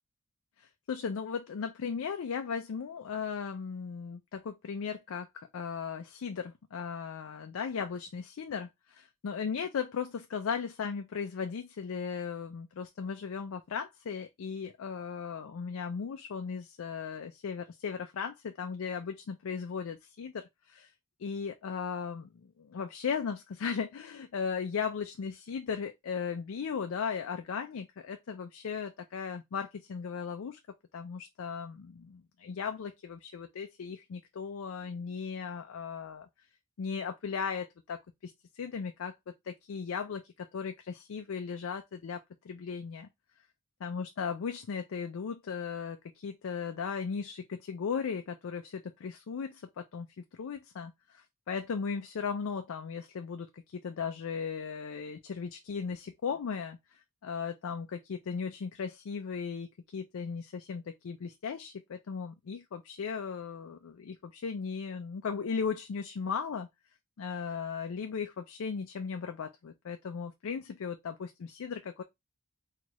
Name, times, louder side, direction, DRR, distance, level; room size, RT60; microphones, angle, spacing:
voice 1, 0.6-20.9 21.2-22.3 22.6-30.6 30.9-36.3 36.8-39.1 39.5-43.1 43.8-66.7 67.2-72.0, left 6 dB, 70° left, 0.4 m, -37 dB
4.4 x 2.3 x 3.0 m
head